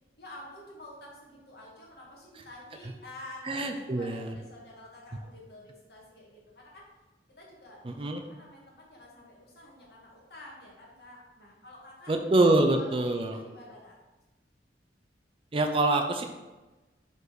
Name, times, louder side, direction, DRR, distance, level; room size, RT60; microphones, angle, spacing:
voice 1, 0.2-3.5 3.8-6.9 7.4-12.1 12.4-14.0, left 1 dB, 60° left, -3 dB, 1.8 m, -49 dB
voice 2, 3.4-4.4 7.8-8.2 12.1-13.4 15.5-16.2, right 2 dB, 30° right, 5 dB, 0.5 m, -25 dB
5.3 x 4.0 x 4.7 m, 1.1 s
head